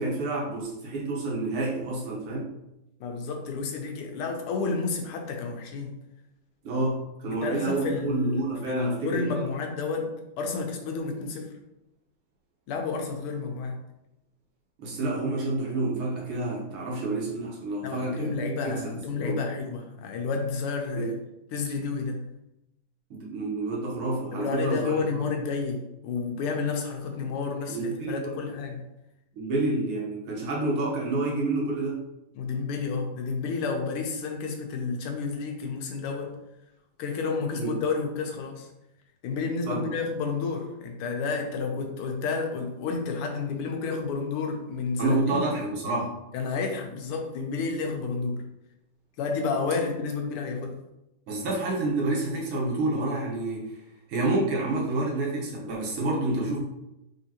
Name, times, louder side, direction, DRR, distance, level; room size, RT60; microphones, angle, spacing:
voice 1, 0.0-2.6 6.6-9.5 14.8-18.4 18.7-19.4 21.0-21.1 23.1-25.3 27.7-28.4 29.4-32.0 37.6-37.7 39.7-39.9 45.0-46.1 51.3-53.8 54.1-56.6, right 2 dB, 80° right, -3 dB, 2.0 m, -29 dB
voice 2, 3.0-6.0 7.4-11.5 12.7-13.8 17.8-21.1 21.5-22.2 24.3-28.8 32.3-36.4 37.0-38.7 39.2-45.4 46.3-48.4 49.2-50.8, left 4 dB, 90° left, 3 dB, 1.7 m, -30 dB
4.3 x 3.8 x 2.9 m, 0.90 s
omnidirectional pair, 2.4 m